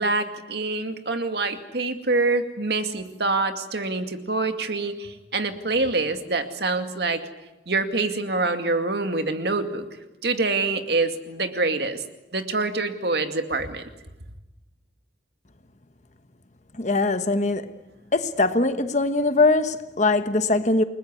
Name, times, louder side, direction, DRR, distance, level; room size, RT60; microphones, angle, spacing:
voice 1, 0.0-7.2 7.7-9.9 10.2-12.0 12.3-13.8, right 3 dB, 60° right, 2.3 m, -25 dB
voice 2, 16.8-17.7 18.1-20.8, left 2 dB, 40° left, 1.2 m, -21 dB
29.0 x 20.5 x 9.7 m
head